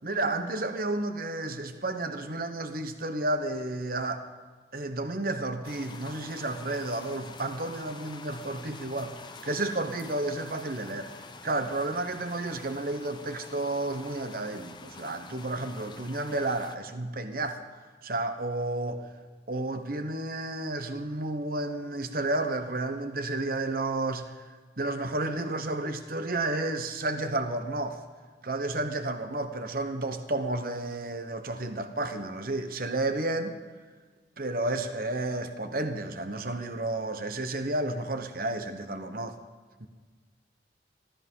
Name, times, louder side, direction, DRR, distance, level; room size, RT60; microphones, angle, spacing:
voice 1, 0.0-4.2 4.7-11.2 11.4-17.6 18.0-19.1 19.5-24.4 24.8-28.0 28.4-33.6 34.4-39.4 39.8-39.9, right 2 dB, 50° right, 1.1 m, -31 dB
sound 1, 5.6-16.8, left 4 dB, 25° left, 0.7 m, -47 dB
15.5 x 13.5 x 5.5 m
head